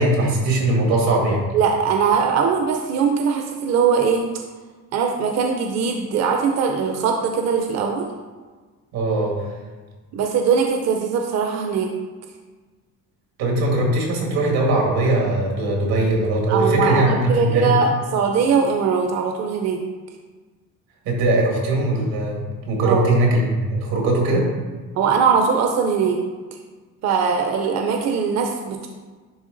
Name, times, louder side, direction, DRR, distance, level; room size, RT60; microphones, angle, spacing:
voice 1, 0.0-1.4 8.9-9.3 13.4-17.7 21.1-24.5, right 2 dB, 90° right, -1 dB, 2.1 m, -20 dB
voice 2, 1.5-4.3 4.9-8.1 10.1-11.9 16.5-19.8 22.9-23.1 25.0-26.2 27.0-28.9, right 6 dB, 50° right, 3 dB, 0.6 m, -21 dB
10.5 x 3.5 x 3.9 m, 1.4 s
cardioid pair, 170°, 35 cm